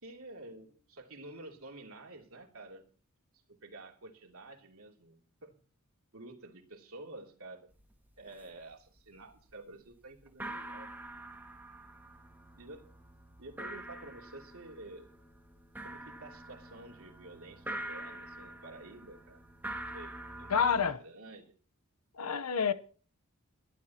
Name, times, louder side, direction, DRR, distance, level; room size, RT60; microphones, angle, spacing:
voice 1, 0.0-2.8 3.5-5.6 6.1-7.7 8.2-10.9 12.5-12.9 13.4-15.1 15.8-19.4 19.9-21.5, right 2 dB, 70° right, 3.0 m, -50 dB
sound 1, 7.7-8.6 9.0-9.6 9.9-10.0 10.3-20.9, right 1 dB, 10° right, 1.9 m, -45 dB
voice 2, 20.5-21.0 22.2-22.7, left 6 dB, 90° left, 1.0 m, -28 dB
23.0 x 12.0 x 2.9 m
head